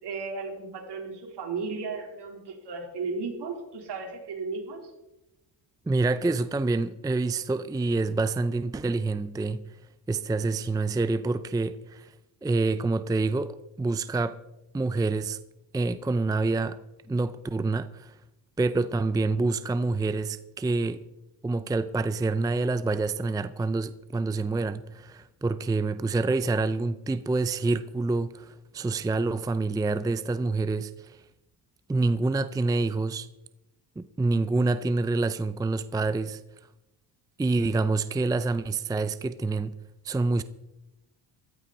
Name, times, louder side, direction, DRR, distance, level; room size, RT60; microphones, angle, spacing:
voice 1, 0.0-4.8, right 4 dB, 60° right, 4.1 m, -35 dB
voice 2, 5.9-9.6 10.1-12.1 12.4-14.4 14.7-15.4 15.7-16.8 17.1-18.2 18.6-21.0 21.4-31.2 31.9-33.3 34.0-36.4 37.4-39.7 40.0-40.4, right 3 dB, 10° right, 0.5 m, -27 dB
15.0 x 14.0 x 4.2 m
cardioid pair, 90°, 46 cm